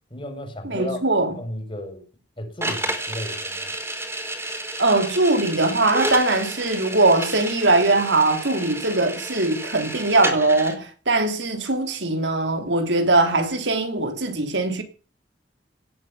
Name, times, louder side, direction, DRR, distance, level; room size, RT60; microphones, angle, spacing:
voice 1, 0.1-2.0 2.4-3.7, left 1 dB, 30° left, 5.4 m, -34 dB
voice 2, 0.6-1.3 4.8-14.8, right 2 dB, 85° right, 3.3 m, -21 dB
sound 1, 2.6-10.8, right 1 dB, 15° right, 4.2 m, -31 dB
18.0 x 8.4 x 8.3 m
head